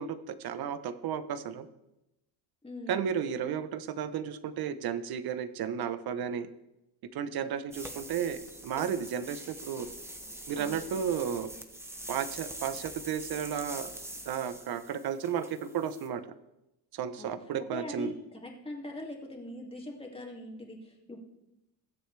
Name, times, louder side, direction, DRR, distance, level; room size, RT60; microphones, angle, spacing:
voice 1, 0.0-1.7 2.9-6.5 7.1-9.9 10.5-11.5 12.1-13.9 14.2-16.2 16.9-18.1, right 8 dB, 55° right, 12 dB, 1.0 m, -33 dB
voice 2, 2.6-3.2 10.6-11.0 17.2-21.2, left 1 dB, 15° left, 0 dB, 2.4 m, -42 dB
sound 1, 7.7-16.1, right 1 dB, 5° right, 1.1 m, -44 dB
21.0 x 8.0 x 3.4 m, 0.91 s
cardioid pair, 120°, 44 cm